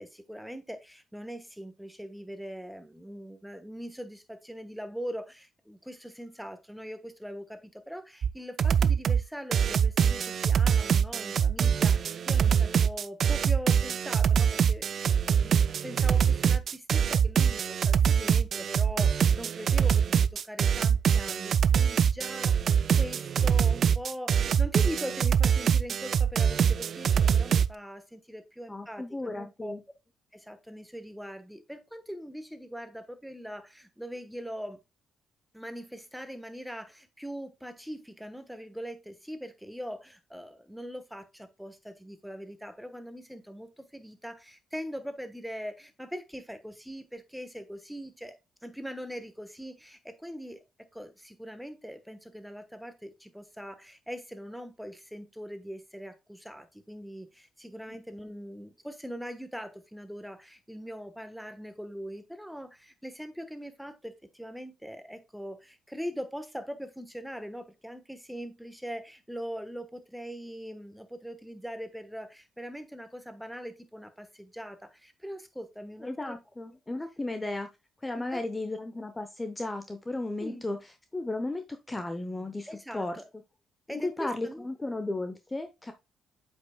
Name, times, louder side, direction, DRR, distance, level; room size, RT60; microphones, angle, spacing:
voice 1, 0.0-29.7 30.3-34.8 35.5-48.4 48.6-50.6 50.9-76.3 78.1-78.4 80.4-80.6 82.7-83.3 83.9-84.7, equal, ahead, 1.1 m, -41 dB
sound 1, 8.2-8.3 8.6-9.2 9.5-27.7, right 7 dB, 55° right, 0.3 m, -24 dB
voice 2, 28.7-29.8 57.9-58.0 76.0-77.7 78.0-82.7 82.9-83.2 83.9-85.9, left 2 dB, 15° left, 0.7 m, -34 dB
7.9 x 5.5 x 2.2 m
cardioid pair, 90°, 0 cm